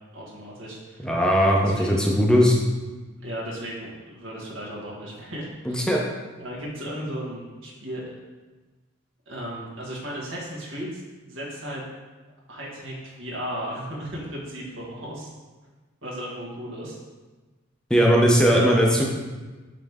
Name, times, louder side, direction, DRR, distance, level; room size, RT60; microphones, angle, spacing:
voice 1, 0.1-1.1 1.6-2.2 3.2-5.8 6.4-8.0 9.3-11.9 12.5-15.3 16.0-17.0 18.5-18.8, equal, 80° right, -5 dB, 1.8 m, -35 dB
voice 2, 1.0-2.6 5.7-6.0 17.9-19.1, equal, 5° left, -2 dB, 0.6 m, -19 dB
8.7 x 3.2 x 3.6 m, 1.3 s
head